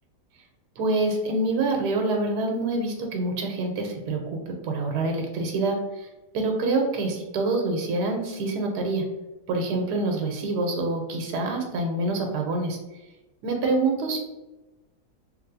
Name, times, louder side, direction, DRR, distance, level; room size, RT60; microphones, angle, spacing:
voice 1, 0.8-6.1 6.3-9.0 9.5-12.8 13.4-14.2, right 2 dB, 85° right, 2 dB, 1.2 m, -26 dB
3.2 x 2.9 x 2.5 m, 1.1 s
omnidirectional pair, 1.7 m